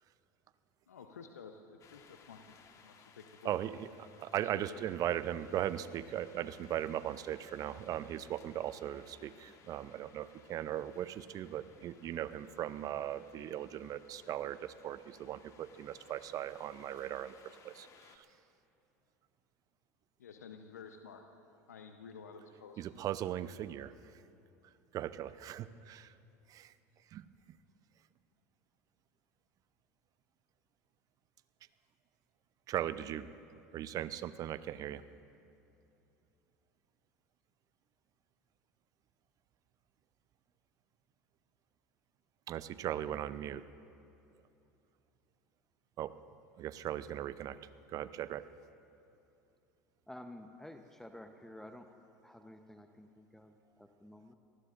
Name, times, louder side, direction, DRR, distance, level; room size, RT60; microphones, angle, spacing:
voice 1, 0.9-2.4 2.7-3.6 4.5-4.8 20.2-21.2 21.7-22.8, left 6 dB, 85° left, 5 dB, 0.8 m, -51 dB
sound 1, 1.8-18.2, left 6 dB, 40° left, 1.5 m, -62 dB
voice 2, 3.4-18.3 22.8-24.2 24.9-26.1 26.5-26.7 27.1-27.6 32.7-33.3 33.7-35.0 42.5-43.6 46.0-46.1 46.6-47.6 47.9-48.5, right 11 dB, 45° right, 15 dB, 0.6 m, -38 dB
voice 3, 50.1-51.9 52.2-54.3, left 1 dB, 5° left, 6 dB, 0.9 m, -51 dB
27.5 x 19.0 x 2.6 m, 2.8 s
hypercardioid pair, 80°, 8 cm